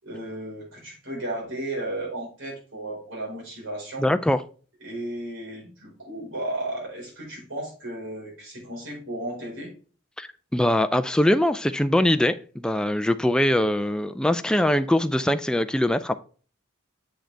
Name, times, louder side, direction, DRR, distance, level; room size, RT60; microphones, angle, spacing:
voice 1, 0.0-4.1 4.8-9.7, right 1 dB, 75° right, -3 dB, 4.5 m, -34 dB
voice 2, 4.0-4.4 10.2-16.1, left 1 dB, 5° left, 9 dB, 0.4 m, -22 dB
8.0 x 6.4 x 3.4 m, 0.39 s
head